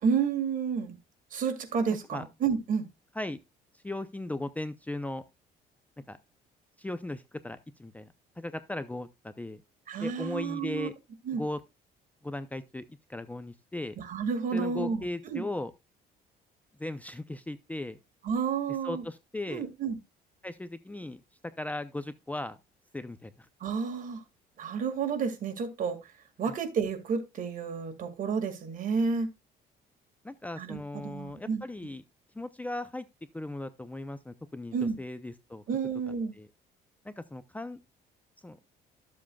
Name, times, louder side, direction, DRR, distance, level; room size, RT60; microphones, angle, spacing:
voice 1, 0.0-1.0 1.3-2.9 9.9-10.9 11.3-11.4 14.0-15.4 18.2-19.0 19.5-20.0 23.6-24.2 24.6-26.0 26.4-29.3 30.6-31.6 34.7-35.0 35.7-36.3, right 6 dB, 50° right, 2.1 m, -30 dB
voice 2, 3.8-5.2 6.1-6.2 6.8-8.1 8.4-9.6 10.0-10.9 11.3-11.6 12.2-12.8 13.1-13.9 14.5-15.7 16.8-18.0 18.8-19.6 20.4-21.2 21.6-22.6 22.9-23.3 26.4-26.5 30.2-32.0 32.4-33.1 33.3-35.6 36.4-36.5 37.0-37.8 38.4-38.7, left 2 dB, 10° left, 0.6 m, -37 dB
13.0 x 7.5 x 2.3 m
cardioid pair, 110°, 17 cm